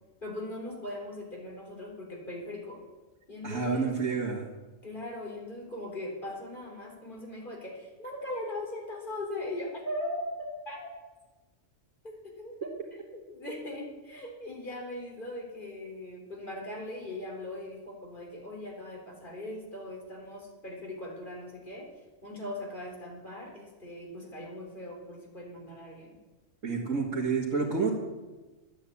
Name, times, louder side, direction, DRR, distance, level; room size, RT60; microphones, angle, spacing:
voice 1, 0.2-2.8 3.3-3.9 4.8-10.9 12.0-12.7 13.1-21.9 22.2-26.2, left 1 dB, 40° left, 0 dB, 3.9 m, -39 dB
voice 2, 3.4-4.5 26.6-27.9, right 4 dB, 75° right, -6 dB, 2.4 m, -29 dB
12.5 x 10.5 x 8.5 m, 1.2 s
omnidirectional pair, 1.4 m